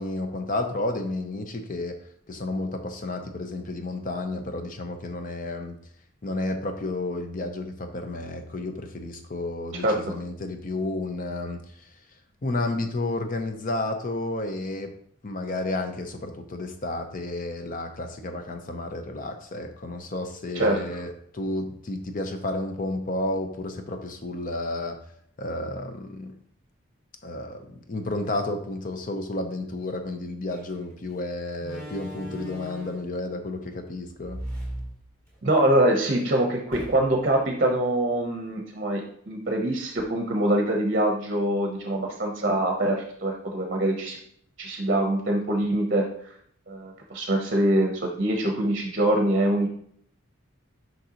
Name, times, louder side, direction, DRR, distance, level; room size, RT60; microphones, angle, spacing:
voice 1, 0.0-2.0 2.3-5.8 6.2-11.6 12.4-14.9 15.2-25.0 25.4-26.3 27.2-34.4, left 2 dB, 40° left, 6 dB, 0.7 m, -31 dB
Slam, 30.5-30.7 31.6-33.2 34.2-35.6 36.0-36.1 36.7-37.3, right 1 dB, 15° left, 2.6 m, -38 dB
voice 2, 35.4-44.2 44.6-46.1 46.7-49.7, right 1 dB, 40° right, 2 dB, 0.8 m, -24 dB
6.4 x 5.3 x 2.9 m, 0.64 s
head